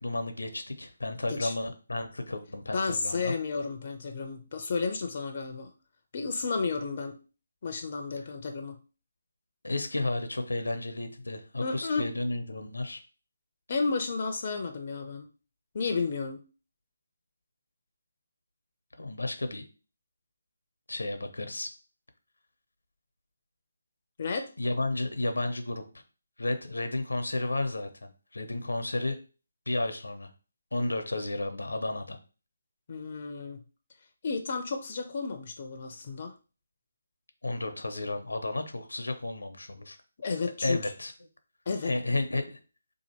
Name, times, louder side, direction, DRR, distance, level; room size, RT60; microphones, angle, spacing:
voice 1, 0.0-3.3 9.6-13.0 19.0-19.7 20.9-21.7 24.6-25.8 26.4-29.2 29.7-30.3 30.7-32.2 37.4-40.0 40.6-41.1 41.8-42.6, left 2 dB, 80° left, 7 dB, 0.7 m, -32 dB
voice 2, 2.7-5.7 6.1-7.2 7.6-8.7 11.6-12.1 13.7-15.3 15.7-16.4 24.2-24.5 32.9-33.6 34.2-36.3 40.2-40.9 41.7-41.9, left 4 dB, 45° left, 4 dB, 0.5 m, -32 dB
2.8 x 2.5 x 4.3 m, 0.35 s
figure-of-eight pair, 155°, 0 cm